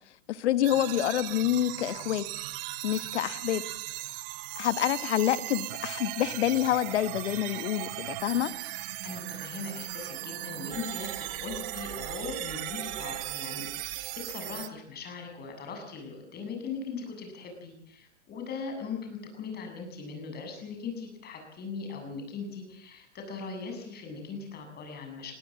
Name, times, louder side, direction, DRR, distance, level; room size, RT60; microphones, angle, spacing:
voice 1, 0.3-2.3 2.8-3.6 4.6-8.5, left 12 dB, 65° left, 15 dB, 1.4 m, -27 dB
sound 1, 0.6-14.7, right 17 dB, 50° right, 1.5 m, -37 dB
voice 2, 9.0-25.3, left 5 dB, 25° left, 4 dB, 7.5 m, -39 dB
21.0 x 17.5 x 7.7 m, 0.74 s
hypercardioid pair, 125°, 36 cm